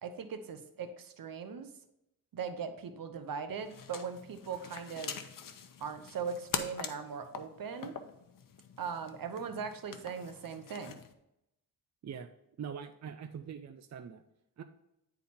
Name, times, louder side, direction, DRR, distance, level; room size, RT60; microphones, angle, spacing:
voice 1, 0.0-1.7 2.3-5.2 5.8-8.0 8.8-10.9, right 6 dB, 75° right, 9 dB, 0.9 m, -39 dB
sound 1, 3.6-11.1, left 7 dB, 70° left, 0.8 m, -44 dB
voice 2, 12.6-14.2 14.6-14.7, right 7 dB, 50° right, 8 dB, 0.6 m, -43 dB
9.8 x 4.1 x 4.2 m, 0.84 s
cardioid pair, 80°, 35 cm